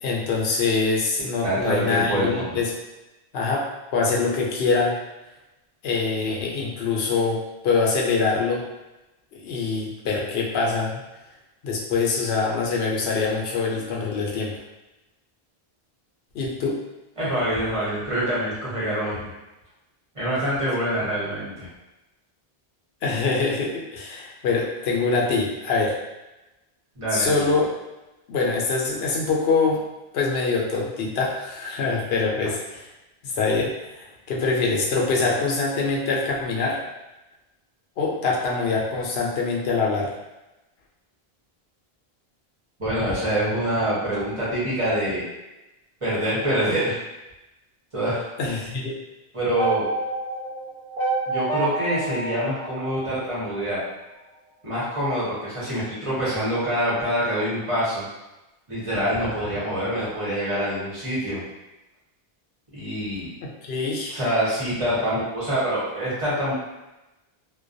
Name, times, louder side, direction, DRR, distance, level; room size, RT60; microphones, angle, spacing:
voice 1, 0.0-2.7 3.3-5.0 5.8-7.4 7.6-8.6 9.3-11.0 11.6-14.6 16.3-16.8 23.0-26.0 27.1-27.7 28.3-29.8 30.1-32.8 33.2-36.8 38.0-40.1 48.4-48.9 63.7-64.2, left 4 dB, 80° left, -2 dB, 0.8 m, -24 dB
voice 2, 1.4-2.6 17.2-19.3 20.1-21.7 27.0-27.3 42.8-45.3 46.0-47.0 47.9-48.3 49.3-49.9 51.3-53.8 54.6-58.0 58.7-61.4 62.7-63.3 64.1-66.5, equal, 35° right, -10 dB, 1.0 m, -25 dB
sound 1, 49.6-53.7, right 3 dB, 85° right, 1.0 m, -28 dB
2.2 x 2.2 x 2.5 m, 1.0 s
omnidirectional pair, 1.0 m